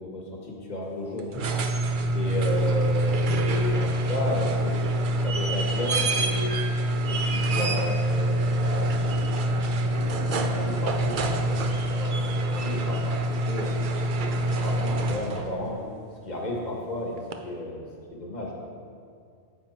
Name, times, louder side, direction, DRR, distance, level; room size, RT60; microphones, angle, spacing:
voice 1, 0.0-1.5 2.1-4.8 5.1-6.5 7.1-11.2 11.4-13.8 14.2-15.9 16.2-17.8 18.1-18.5, left 1 dB, 35° left, -1 dB, 1.5 m, -33 dB
sound 1, 1.2-15.6 17.3-17.4, right 1 dB, 50° right, 0.7 m, -26 dB
9.7 x 7.8 x 4.4 m, 2.3 s
omnidirectional pair, 1.4 m